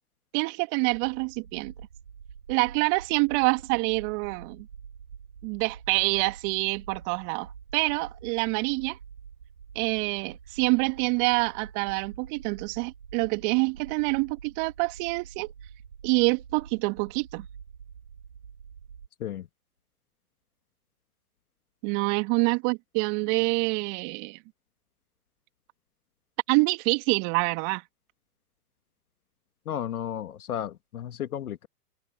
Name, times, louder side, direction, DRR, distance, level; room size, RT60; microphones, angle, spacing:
voice 1, 0.3-1.7 2.5-4.7 5.4-9.0 9.7-15.5 16.0-17.5 21.8-24.4 26.5-27.8, right 31 dB, 40° right, 2.5 m, -26 dB
sound 1, 0.8-19.1, right 7 dB, 80° right, 6.5 m, -47 dB
voice 2, 29.7-31.7, left 10 dB, 70° left, 2.4 m, -33 dB
hypercardioid pair, 115°, 46 cm